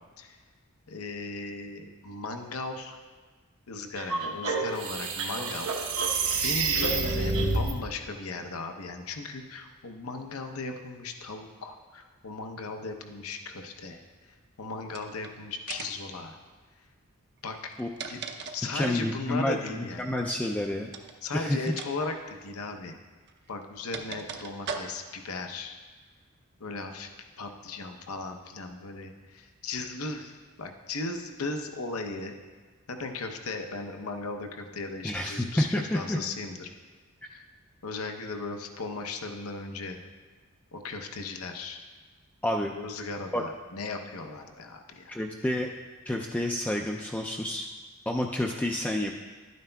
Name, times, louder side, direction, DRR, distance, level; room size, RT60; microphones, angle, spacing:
voice 1, 0.9-3.0 3.7-5.7 5.9-14.0 14.6-16.4 17.4-17.7 18.1-18.2 18.5-20.1 21.2-22.9 23.5-25.8 26.6-27.1 27.4-32.3 32.9-36.7 37.2-37.4 37.8-40.0 40.7-41.8 42.8-45.2, left 3 dB, 75° left, 5 dB, 0.8 m, -37 dB
sound 1, 4.0-7.7, right 4 dB, 80° right, 1.0 m, -28 dB
sound 2, 14.9-15.3 15.7-16.1 17.6-19.1 20.9-21.2 21.7-21.9 22.2-22.3 23.3-25.2, right 5 dB, 50° right, 0.6 m, -39 dB
voice 2, 18.7-20.9 21.3-21.7 35.0-36.2 42.4-42.7 43.3-43.4 45.1-45.7 46.1-47.7 48.1-49.1, left 1 dB, 5° left, 1 dB, 0.3 m, -29 dB
11.5 x 9.3 x 2.3 m, 1.4 s
head